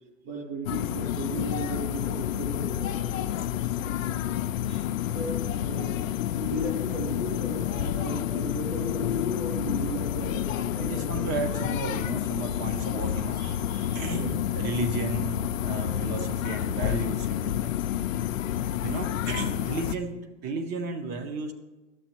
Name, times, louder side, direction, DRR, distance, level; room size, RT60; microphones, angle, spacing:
voice 1, 0.2-3.3 5.0-6.0 6.4-11.1 13.9-14.3 20.0-20.2, right 2 dB, 90° right, -4 dB, 2.8 m, -36 dB
sound 1, 0.7-20.0, left 11 dB, 90° left, 0.5 m, -29 dB
voice 2, 10.6-17.8 18.8-20.1 20.4-21.5, right 3 dB, 25° right, 9 dB, 0.7 m, -34 dB
12.0 x 7.4 x 3.0 m, 1.1 s
hypercardioid pair, 140°, 39 cm